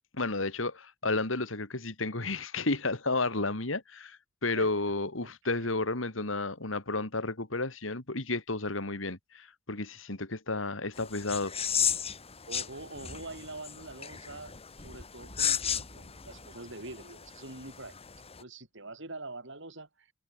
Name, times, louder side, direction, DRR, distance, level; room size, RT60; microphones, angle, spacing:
voice 1, 0.1-11.5, left 3 dB, 70° left, 2.6 m, -32 dB
voice 2, 5.2-5.7 12.5-20.1, right 2 dB, 65° right, 6.8 m, -45 dB
sound 1, 10.9-18.4, left 8 dB, 30° left, 2.3 m, -35 dB
head